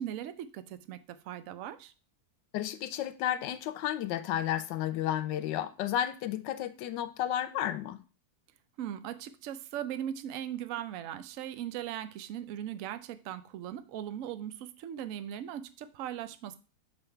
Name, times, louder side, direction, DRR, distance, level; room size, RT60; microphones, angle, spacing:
voice 1, 0.0-1.9 8.8-16.6, right 10 dB, 70° right, 0.8 m, -39 dB
voice 2, 2.5-8.0, left 11 dB, 90° left, 1.2 m, -32 dB
6.9 x 3.5 x 4.4 m
omnidirectional pair, 1.9 m